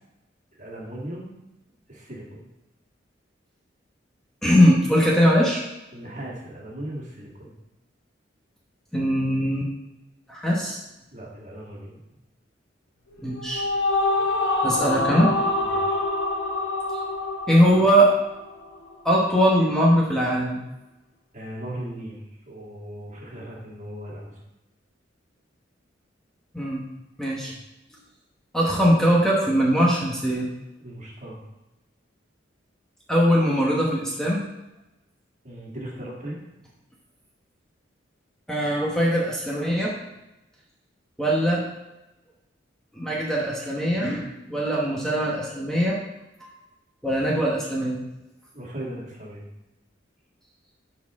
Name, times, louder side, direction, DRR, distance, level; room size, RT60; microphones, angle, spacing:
voice 1, 0.6-1.3 1.9-2.5 5.9-7.5 11.1-12.0 15.7-16.0 21.3-24.3 27.4-27.5 30.8-31.4 35.4-36.4 48.5-49.4, right 1 dB, 40° right, -3 dB, 1.9 m, -37 dB
voice 2, 4.4-5.6 8.9-9.7 10.3-10.8 13.2-13.6 14.6-15.3 16.9-17.0 17.5-18.1 19.0-20.6 26.5-26.8 27.2-27.5 28.5-30.5 33.1-34.4 38.5-39.9 41.2-41.6 42.9-46.0 46.4-46.5 47.0-48.0, equal, 5° left, -4 dB, 1.1 m, -21 dB
sound 1, 13.1-18.6, left 2 dB, 65° left, 1.1 m, -26 dB
11.0 x 4.4 x 3.6 m, 0.99 s
head